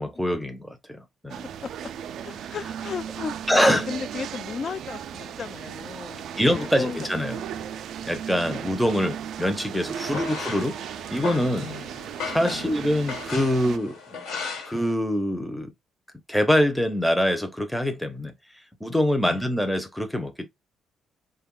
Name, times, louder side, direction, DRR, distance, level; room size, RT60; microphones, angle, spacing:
voice 1, 0.0-1.4 3.5-3.9 6.4-7.4 8.0-10.8 11.1-11.7 12.3-14.0 14.7-15.7 16.3-20.5, equal, ahead, 0.6 m, -24 dB
sound 1, 1.3-13.8, right 9 dB, 75° right, 0.3 m, -36 dB
voice 2, 2.2-7.6 8.3-8.6 10.0-10.2 11.6-11.9 12.5-12.7 19.2-19.4, left 6 dB, 50° left, 0.5 m, -36 dB
sound 2, 10.0-14.9, left 5 dB, 90° left, 1.3 m, -36 dB
4.1 x 2.2 x 3.7 m
cardioid pair, 90°, 0 cm